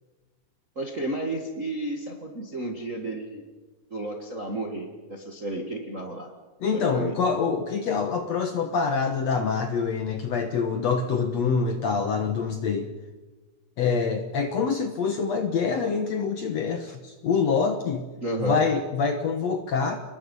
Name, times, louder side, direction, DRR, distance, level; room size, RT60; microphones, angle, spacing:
voice 1, 0.7-3.5 3.9-6.3 6.7-7.2 18.2-18.7, right 2 dB, 35° right, 2 dB, 1.3 m, -32 dB
voice 2, 6.6-12.9 13.8-18.1 18.4-20.0, left 5 dB, 65° left, 6 dB, 1.9 m, -25 dB
29.0 x 21.0 x 5.4 m, 1.2 s
omnidirectional pair, 4.2 m